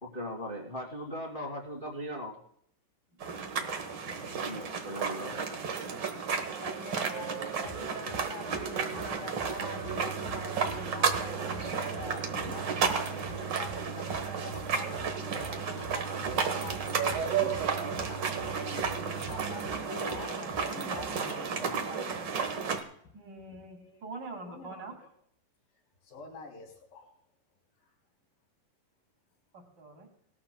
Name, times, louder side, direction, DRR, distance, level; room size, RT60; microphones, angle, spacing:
voice 1, 0.0-2.4 4.4-5.6 5.8-6.0, equal, 25° left, -1 dB, 1.3 m, -39 dB
sound 1, 3.2-22.8, right 6 dB, 65° right, 1.1 m, -33 dB
voice 2, 6.6-22.5 23.5-24.1 24.4-25.0 26.0-27.1, left 3 dB, 90° left, 1 dB, 4.7 m, -45 dB
sound 2, 7.6-8.2 8.5-8.7 8.9-9.9 10.2-10.4 10.6-11.7 11.9-12.1 12.3-13.4 13.6-13.8 14.1-15.5 15.8-18.5 18.8-18.9 19.2-21.2, left 1 dB, 70° left, 2.7 m, -47 dB
sound 3, 9.6-19.6, right 10 dB, 85° right, 3.4 m, -44 dB
voice 3, 23.1-24.9 29.5-30.1, right 3 dB, 35° right, 3 dB, 2.4 m, -44 dB
19.5 x 13.5 x 2.2 m, 0.66 s
omnidirectional pair, 3.9 m